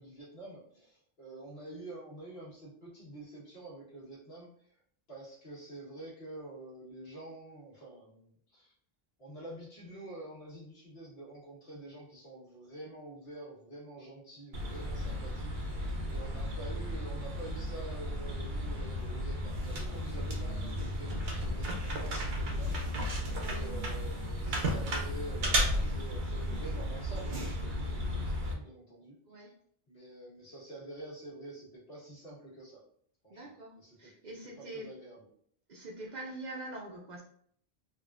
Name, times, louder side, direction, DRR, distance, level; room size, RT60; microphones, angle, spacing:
voice 1, 0.0-4.7 5.1-8.7 9.2-23.1 23.4-29.5 29.9-32.8 33.2-35.3, right 2 dB, 70° left, -6 dB, 1.5 m, -48 dB
sound 1, 14.5-28.5, equal, 75° right, 0.9 m, -34 dB
voice 2, 23.3-23.7 29.3-29.5 33.3-33.7 34.0-34.9 35.7-37.2, right 2 dB, 55° right, -1 dB, 0.6 m, -44 dB
3.6 x 2.4 x 2.4 m, 0.63 s
omnidirectional pair, 1.0 m